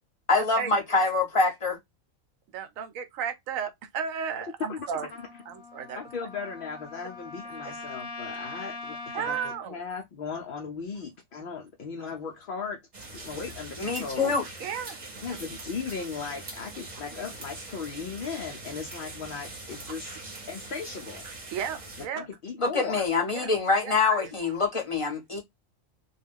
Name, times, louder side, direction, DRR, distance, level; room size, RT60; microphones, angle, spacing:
voice 1, 0.3-1.8 13.8-14.4 22.7-25.4, left 4 dB, 30° left, 0.7 m, -25 dB
voice 2, 2.5-5.1 5.5-6.0 7.6-7.8 9.1-9.8 12.0-12.1 14.4-15.0 21.2-22.3 23.3-23.5 23.8-24.3, right 7 dB, 85° right, 1.0 m, -34 dB
voice 3, 4.7-5.1 6.0-12.8 13.2-14.4 15.2-20.2 20.5-21.2 22.1-23.0, left 5 dB, 65° left, 0.5 m, -37 dB
Trumpet, 5.1-9.6, left 3 dB, 85° left, 1.1 m, -41 dB
sound 1, 12.9-22.1, right 2 dB, 40° right, 0.8 m, -42 dB
2.3 x 2.2 x 3.4 m
omnidirectional pair, 1.4 m